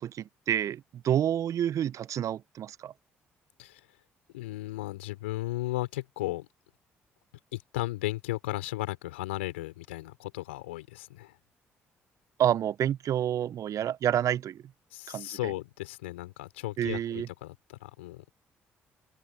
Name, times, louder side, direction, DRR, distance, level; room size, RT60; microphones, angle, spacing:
voice 1, 0.0-2.9 12.4-14.6 15.1-15.4 16.8-17.3, right 10 dB, 55° right, 1.1 m, -29 dB
voice 2, 4.3-6.5 7.5-11.4 14.9-18.2, left 18 dB, 80° left, 5.0 m, -35 dB
open air
hypercardioid pair, 45°, 6 cm